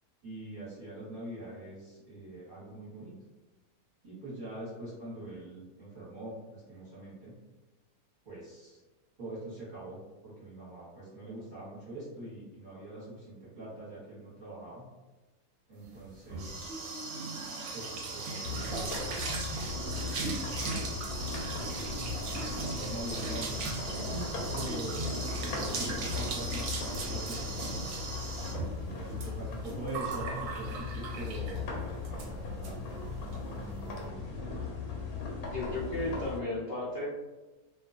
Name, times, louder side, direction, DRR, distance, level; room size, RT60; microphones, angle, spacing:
voice 1, 0.2-3.1 4.0-7.3 8.2-8.8 9.2-10.0 10.2-14.9 15.7-16.6 17.7-20.6 21.2-21.8 22.6-27.9 28.7-32.8 33.1-34.4, right 1 dB, 40° right, -9 dB, 0.9 m, -44 dB
sound 1, 15.9-31.7 32.0-32.3 32.6-32.7 33.0-33.4, right 3 dB, 70° right, 0.9 m, -38 dB
sound 2, 18.4-36.4, left 4 dB, 85° left, 1.1 m, -38 dB
voice 2, 35.4-37.1, left 2 dB, 70° left, -7 dB, 0.6 m, -34 dB
2.4 x 2.2 x 2.3 m, 1.1 s
omnidirectional pair, 1.6 m